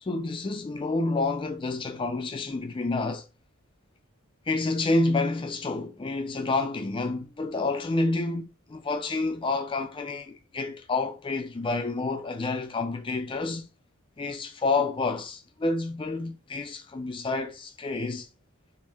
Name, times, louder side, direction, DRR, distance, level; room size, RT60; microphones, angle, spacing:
voice 1, 0.0-3.2 4.5-13.7 14.2-18.3, left 3 dB, 20° left, 0.3 m, -29 dB
2.5 x 2.1 x 3.3 m
head